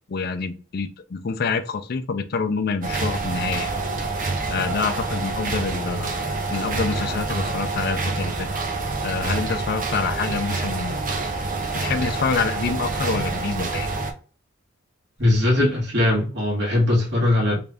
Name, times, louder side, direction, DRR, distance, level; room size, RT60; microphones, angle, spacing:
voice 1, 0.1-3.7 4.5-6.2 6.5-8.5 9.0-11.0 11.7-13.9, left 4 dB, 55° left, 0.5 m, -27 dB
sound 1, 2.8-14.1, right 3 dB, 45° right, 0.6 m, -27 dB
voice 2, 15.2-17.6, left 1 dB, 65° right, 1.6 m, -20 dB
3.3 x 2.5 x 3.4 m
head